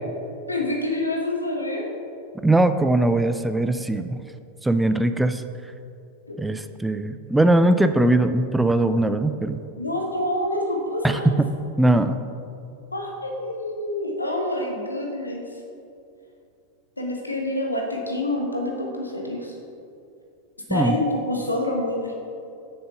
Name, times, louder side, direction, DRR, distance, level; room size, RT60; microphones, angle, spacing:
voice 1, 0.5-1.8 6.3-6.4 9.8-11.3 12.9-15.4 17.0-19.5 20.7-22.1, left 1 dB, 85° left, 1 dB, 1.3 m, -27 dB
voice 2, 2.4-4.2 4.6-5.4 6.4-9.6 11.0-11.5 11.8-12.2 20.7-21.0, right 1 dB, 5° right, 10 dB, 0.3 m, -20 dB
6.9 x 6.4 x 5.6 m, 2.6 s
figure-of-eight pair, 90°, 0 cm